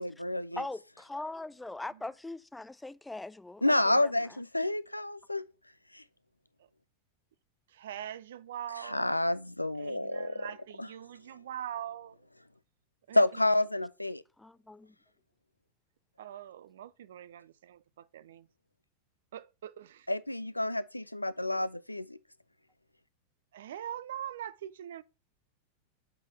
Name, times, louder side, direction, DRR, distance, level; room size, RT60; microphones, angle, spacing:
voice 1, 0.0-0.6 3.6-5.4 5.9-6.0 8.8-10.5 10.8-10.9 13.1-14.2 20.1-22.2, left 1 dB, 85° left, 0.3 m, -29 dB
voice 2, 0.6-4.1 14.4-14.9, left 2 dB, 5° left, 0.3 m, -41 dB
voice 3, 7.7-9.2 9.8-12.2 13.1-13.2 16.2-18.5 19.3-20.1 21.5-21.6 23.5-25.0, right 10 dB, 60° right, 0.4 m, -43 dB
6.6 x 4.1 x 5.5 m
figure-of-eight pair, 90°, 0 cm